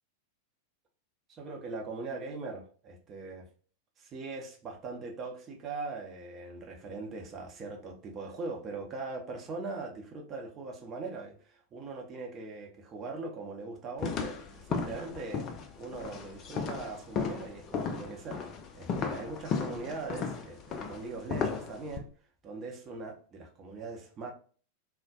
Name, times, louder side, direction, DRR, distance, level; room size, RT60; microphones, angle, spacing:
voice 1, 1.3-3.5 4.0-15.5 15.8-22.1 22.4-24.3, right 3 dB, 30° right, 0.7 m, -41 dB
sound 1, 14.0-22.0, left 5 dB, 35° left, 0.4 m, -35 dB
3.9 x 2.1 x 2.4 m
figure-of-eight pair, 90°, 0 cm